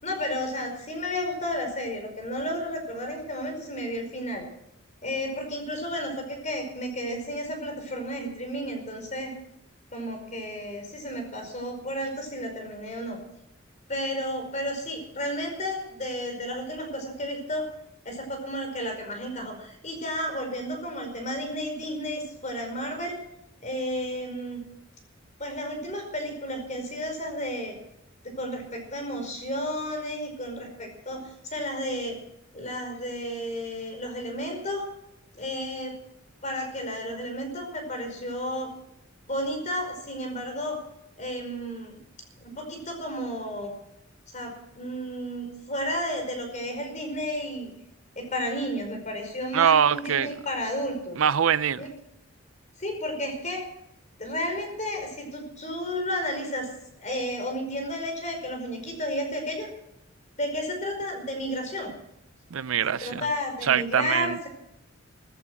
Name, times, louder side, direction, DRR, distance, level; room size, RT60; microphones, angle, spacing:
voice 1, 0.0-4.4 5.0-9.3 9.9-13.2 13.9-17.7 18.1-23.2 23.6-24.6 25.4-27.7 28.2-32.2 32.5-34.9 35.3-35.9 36.4-38.7 39.3-40.8 41.2-42.0 42.4-43.7 44.3-47.7 48.2-51.2 51.8-51.9 52.8-53.6 54.2-56.7 57.0-59.7 60.4-61.9 63.0-64.5, equal, 35° left, 5.0 m, -32 dB
voice 2, 49.5-50.3 51.2-51.8 62.5-63.3 63.6-64.4, right 8 dB, 85° right, 0.5 m, -23 dB
15.0 x 14.0 x 6.3 m
head